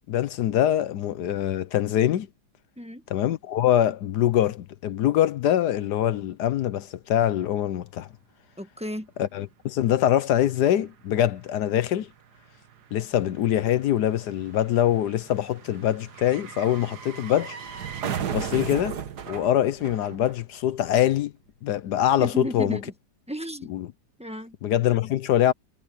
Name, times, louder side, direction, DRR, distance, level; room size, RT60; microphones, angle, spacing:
voice 1, 0.0-2.3 3.1-8.1 9.2-12.1 12.9-17.6 18.3-19.0 19.3-21.3 21.6-22.8 23.7-23.9 24.6-25.5, left 11 dB, 70° left, 1.2 m, -24 dB
voice 2, 8.6-9.1 22.2-22.9 23.3-23.7 24.2-24.5, equal, 5° right, 1.2 m, -33 dB
sound 1, 10.1-10.2 10.4-20.8 21.0-21.1, right 8 dB, 65° right, 1.8 m, -37 dB
omnidirectional pair, 1.9 m